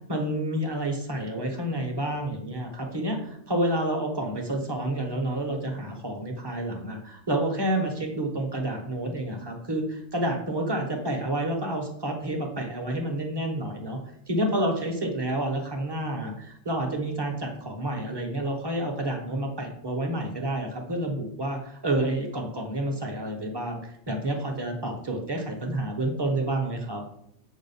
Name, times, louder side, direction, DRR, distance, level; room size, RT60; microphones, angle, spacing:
voice 1, 0.1-14.0 14.3-27.0, right 1 dB, 20° right, 2 dB, 1.0 m, -29 dB
7.1 x 2.5 x 5.4 m, 0.70 s
omnidirectional pair, 1.3 m